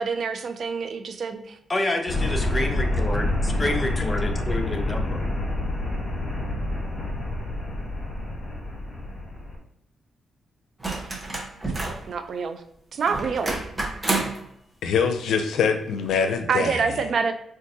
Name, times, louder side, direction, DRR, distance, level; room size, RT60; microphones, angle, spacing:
voice 1, 0.0-1.6 12.1-12.6 12.9-13.6 16.5-17.3, right 5 dB, 60° right, 7 dB, 0.4 m, -26 dB
voice 2, 1.7-5.2, left 1 dB, 20° left, 4 dB, 0.6 m, -28 dB
sound 1, 2.1-9.5, left 1 dB, 40° left, 1.2 m, -27 dB
sound 2, 10.8-12.1 13.1-14.4 16.1-16.2, right 2 dB, 15° right, 0.9 m, -29 dB
voice 3, 14.8-16.8, left 6 dB, 90° left, 6 dB, 0.5 m, -23 dB
4.4 x 2.4 x 2.7 m, 0.76 s
cardioid pair, 105°, 0 cm